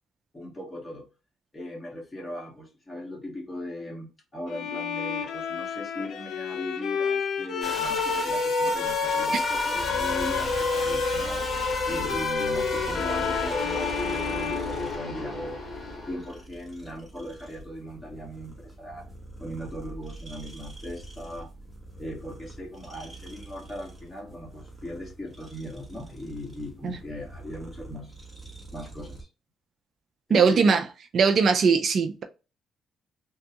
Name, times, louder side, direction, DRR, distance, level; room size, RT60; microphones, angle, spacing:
voice 1, 0.3-1.1 1.5-11.5 11.9-15.6 16.1-19.0 19.4-21.5 22.0-28.1 28.7-29.3 30.3-30.7, left 1 dB, 20° left, 1.8 m, -38 dB
Bowed string instrument, 4.5-15.5, left 6 dB, 75° left, 0.6 m, -31 dB
sound 1, 7.6-16.4, left 2 dB, 40° left, 1.5 m, -30 dB
sound 2, 9.7-29.2, right 2 dB, 10° right, 1.2 m, -43 dB
voice 2, 30.3-30.8 31.1-32.2, right 5 dB, 55° right, 0.4 m, -20 dB
3.4 x 2.3 x 2.8 m
cardioid pair, 90°, 0 cm